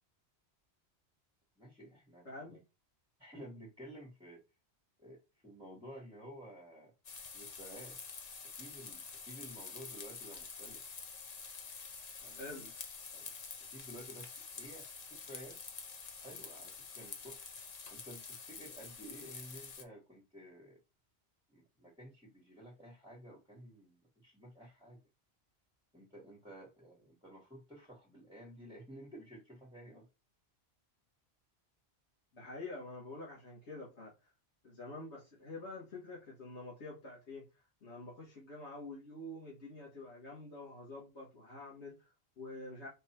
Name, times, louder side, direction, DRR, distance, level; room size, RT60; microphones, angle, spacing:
voice 1, 1.6-2.6 3.2-4.4 5.0-6.9 7.3-8.0 8.5-11.0 12.2-12.7 13.1-13.3 13.7-15.6 16.2-17.5 17.9-20.8 21.5-25.0 25.9-30.1, equal, 5° right, 1.3 m, -53 dB
voice 2, 2.3-2.6 12.4-12.7 32.3-34.1 34.6-37.5 37.8-42.9, left 2 dB, 85° left, 2.0 m, -47 dB
sound 1, 7.0-19.8, left 5 dB, 40° left, 0.7 m, -48 dB
4.5 x 2.6 x 4.4 m
omnidirectional pair, 1.1 m